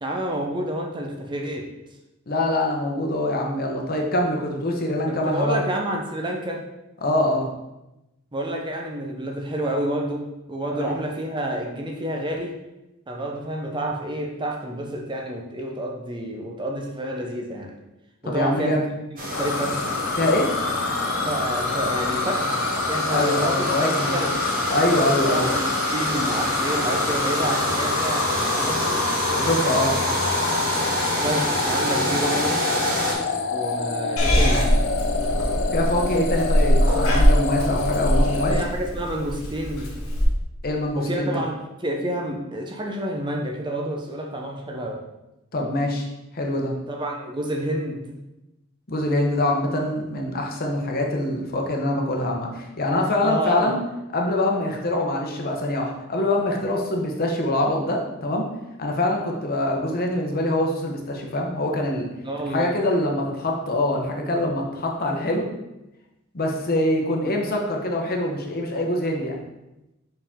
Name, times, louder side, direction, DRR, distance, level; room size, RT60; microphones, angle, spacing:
voice 1, 0.0-1.7 5.1-6.7 8.3-12.5 13.1-17.7 18.3-18.9 19.4-19.7 21.3-22.6 22.9-24.4 25.3-29.0 31.2-32.6 33.5-34.7 38.5-39.9 40.9-41.5 41.8-45.0 46.9-48.2 53.2-53.8 62.2-62.7, right 1 dB, 20° right, 1 dB, 0.7 m, -29 dB
voice 2, 2.3-5.6 7.0-7.5 10.7-11.0 18.2-18.8 20.1-20.5 23.1-24.2 24.7-25.6 29.3-30.0 35.7-38.6 40.6-41.4 45.5-46.1 46.3-46.7 48.9-53.8 54.1-58.5 58.8-62.1 62.5-65.5 66.3-69.4, left 1 dB, 45° left, 1 dB, 0.9 m, -24 dB
sound 1, 19.2-33.1, right 1 dB, 40° right, 1.4 m, -27 dB
sound 2, 19.3-38.6, left 4 dB, 60° left, 0.6 m, -27 dB
Purr / Meow, 34.2-40.2, equal, 85° left, 1.6 m, -22 dB
5.3 x 4.9 x 3.6 m, 0.94 s
head